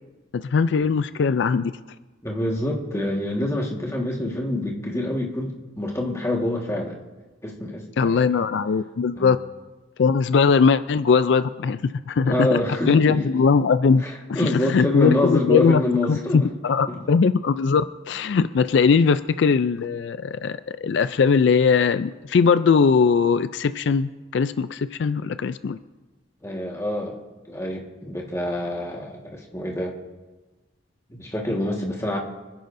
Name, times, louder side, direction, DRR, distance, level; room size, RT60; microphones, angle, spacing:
voice 1, 0.3-1.7 8.0-9.4 10.0-12.6 12.9-14.0 14.3-15.8 16.1-25.8, left 5 dB, 70° left, 12 dB, 0.4 m, -20 dB
voice 2, 2.2-7.0 7.4-8.2 9.2-9.3 12.2-13.4 14.0-16.5 16.9-17.0 26.4-27.2 27.5-30.0 31.1-32.2, left 1 dB, 15° left, -1 dB, 1.6 m, -26 dB
25.5 x 10.5 x 2.6 m, 1.2 s
head